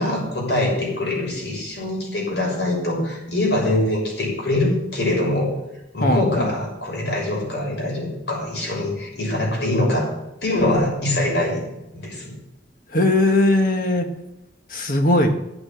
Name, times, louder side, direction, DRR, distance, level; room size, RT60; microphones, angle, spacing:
voice 1, 0.0-5.5 5.9-10.1 10.4-11.6 11.9-12.3, left 1 dB, 70° left, -1 dB, 6.5 m, -23 dB
voice 2, 6.0-6.5 12.9-14.1 14.7-15.3, left 1 dB, 50° left, 5 dB, 1.7 m, -19 dB
13.0 x 8.1 x 7.6 m, 0.93 s
head